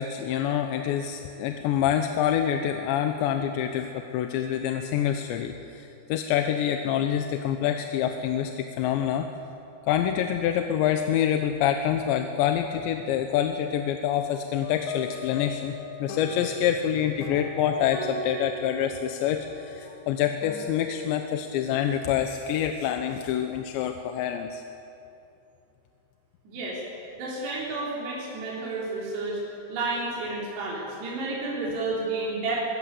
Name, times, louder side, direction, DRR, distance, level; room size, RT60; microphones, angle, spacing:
voice 1, 0.0-9.3 9.9-15.7 16.0-24.6, left 9 dB, 80° left, 5 dB, 3.2 m, -26 dB
sound 1, 14.6-21.1, left 3 dB, 65° left, 2.8 m, -39 dB
voice 2, 26.4-26.8 27.2-32.6, right 2 dB, 70° right, -5 dB, 6.0 m, -31 dB
24.0 x 21.5 x 8.4 m, 2.8 s
omnidirectional pair, 5.2 m